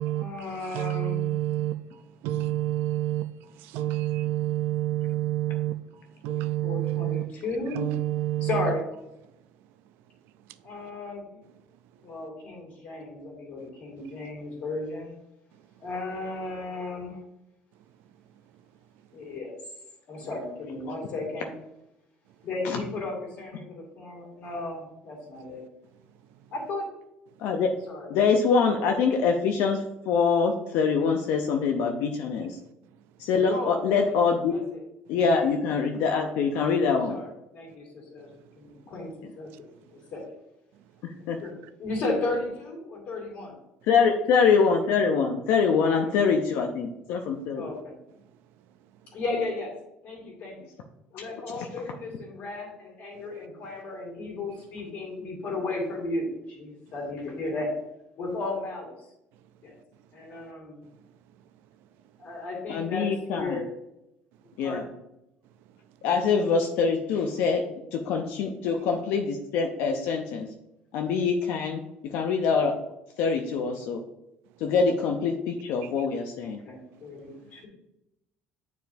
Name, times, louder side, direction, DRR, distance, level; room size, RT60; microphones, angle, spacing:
voice 1, 0.0-1.3 6.3-7.9 8.4-8.9 10.6-11.4 12.0-15.2 15.8-17.2 19.1-19.6 20.1-21.5 22.4-25.6 26.5-26.9 27.9-28.1 33.5-33.8 34.0-34.1 34.5-34.6 36.6-37.3 37.5-38.3 38.5-39.5 39.9-40.2 41.4-41.5 41.8-43.6 45.8-46.1 46.5-46.6 47.6-47.9 49.1-49.7 50.0-50.7 51.1-57.8 58.2-58.9 59.6-59.7 60.1-60.8 62.2-63.6 64.6-64.9 76.4-77.7, left 2 dB, 50° left, -1 dB, 2.4 m, -34 dB
voice 2, 0.7-1.7 2.2-3.2 3.7-5.7 6.2-7.2 7.7-8.7, right 15 dB, 70° right, 11 dB, 0.4 m, -28 dB
voice 3, 28.1-32.6 33.2-34.6 35.1-37.2 39.2-39.3 41.0-41.4 43.8-47.8 51.1-51.7 62.7-63.6 64.6-64.8 66.0-67.6 67.9-70.5 70.9-72.8 73.2-74.0 74.6-76.6, left 5 dB, 70° left, 4 dB, 0.6 m, -24 dB
9.2 x 4.6 x 2.6 m, 0.87 s
cardioid pair, 175°, 4 cm